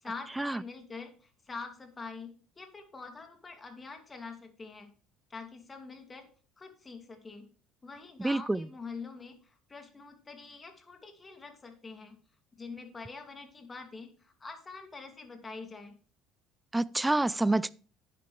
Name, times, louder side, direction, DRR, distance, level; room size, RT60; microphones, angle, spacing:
voice 1, 0.0-2.3 2.6-4.9 5.3-6.3 6.6-7.4 7.8-12.2 12.6-15.9, left 4 dB, 25° left, 2.5 m, -45 dB
voice 2, 8.2-8.7 16.7-17.7, right 2 dB, 10° right, 0.4 m, -27 dB
10.5 x 9.2 x 3.3 m
hypercardioid pair, 70°, 0 cm